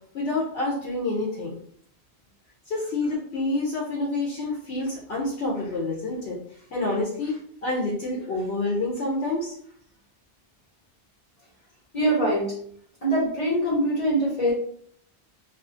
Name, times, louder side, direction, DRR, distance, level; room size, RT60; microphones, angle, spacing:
voice 1, 0.1-1.6 2.7-6.4 6.7-9.6, left 2 dB, 75° left, -4 dB, 0.9 m, -28 dB
voice 2, 11.9-12.5 13.0-14.5, right 1 dB, 40° left, -7 dB, 0.8 m, -23 dB
2.4 x 2.3 x 2.5 m, 0.63 s
omnidirectional pair, 1.1 m